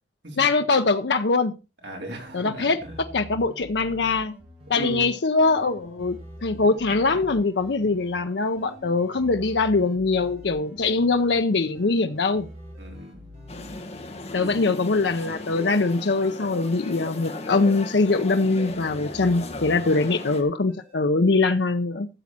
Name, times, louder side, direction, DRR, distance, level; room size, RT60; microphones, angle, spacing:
voice 1, 0.4-1.5 2.3-2.8 3.1-4.3 4.7-6.2 6.4-12.5 14.3-22.1, left 3 dB, 75° left, 0.7 m, -22 dB
voice 2, 1.8-3.0 3.9-4.1 4.7-5.1 12.8-13.2 14.4-15.0 19.8-20.1, right 1 dB, 75° right, 3.9 m, -38 dB
sound 1, 2.2-18.1 18.7-20.9, equal, 40° right, 4.5 m, -46 dB
sound 2, 13.5-20.4, left 2 dB, 40° left, 1.8 m, -37 dB
14.0 x 7.3 x 4.2 m
head